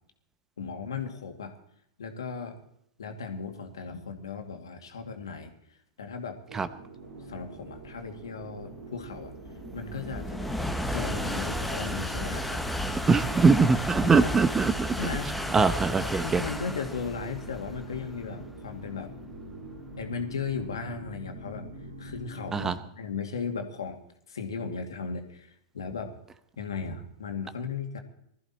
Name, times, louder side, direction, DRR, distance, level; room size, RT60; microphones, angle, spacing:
voice 1, 0.6-1.5 2.0-2.6 3.0-5.5 6.0-6.4 7.3-9.3 9.7-10.5 10.8-12.6 14.2-14.3 15.0-15.3 16.2-19.1 20.0-21.7 22.0-24.0 24.3-26.1 26.6-28.0, left 5 dB, 75° left, 5 dB, 2.5 m, -36 dB
sound 1, 6.5-22.8, right 1 dB, 75° right, 4.9 m, -45 dB
sound 2, 7.4-20.7, equal, 5° left, 1.5 m, -34 dB
voice 2, 13.1-14.9 15.5-16.4 22.5-22.8, right 4 dB, 15° right, 13 dB, 1.0 m, -22 dB
20.5 x 14.0 x 4.4 m, 0.75 s
hypercardioid pair, 100°, 2 cm